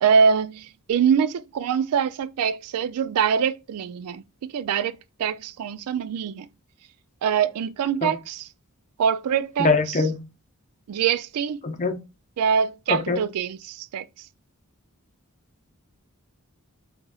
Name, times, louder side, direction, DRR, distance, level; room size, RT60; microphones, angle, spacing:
voice 1, 0.0-6.5 7.2-8.5 9.0-10.1 10.9-11.6 12.4-14.1, right 7 dB, 85° right, 0.3 m, -24 dB
voice 2, 9.6-10.2 11.6-11.9 12.9-13.2, left 4 dB, 35° left, 0.7 m, -22 dB
3.9 x 2.9 x 2.3 m
head